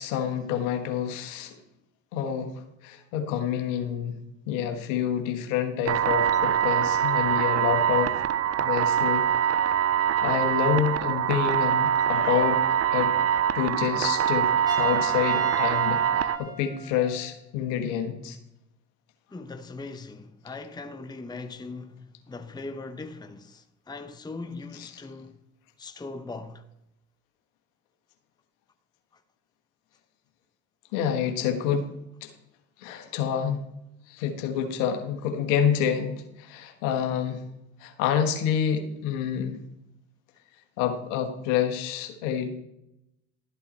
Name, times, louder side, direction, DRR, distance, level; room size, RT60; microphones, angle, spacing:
voice 1, 0.0-1.6 2.1-4.2 4.5-8.2 8.6-9.3 10.2-13.2 13.5-18.4 30.9-31.9 32.2-32.3 32.8-33.6 34.1-37.4 37.8-39.6 40.8-42.5, left 8 dB, 75° left, 1.4 m, -28 dB
sound 1, 5.9-16.4, right 9 dB, 35° right, 0.6 m, -24 dB
Trumpet, 14.7-17.3, right 1 dB, 10° right, 2.6 m, -38 dB
voice 2, 19.3-25.4 25.8-26.6, left 3 dB, 10° left, 0.8 m, -40 dB
12.5 x 8.3 x 4.2 m
hypercardioid pair, 65°, 40 cm